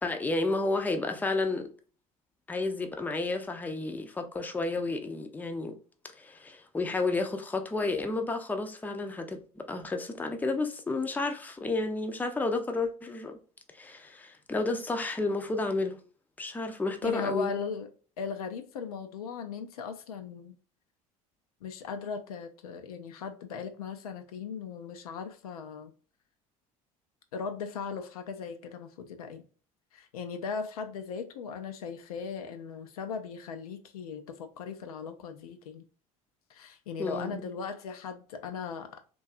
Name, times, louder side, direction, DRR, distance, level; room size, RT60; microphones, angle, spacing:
voice 1, 0.0-1.7 2.5-5.8 6.2-13.4 13.7-16.0 16.4-17.5 37.0-37.5, left 3 dB, 10° left, 0.4 m, -31 dB
voice 2, 17.0-17.9 18.2-20.5 21.6-25.9 27.3-29.4 29.9-35.9 36.5-39.0, left 5 dB, 80° left, 0.4 m, -38 dB
2.6 x 2.3 x 2.4 m
hypercardioid pair, 70°, 19 cm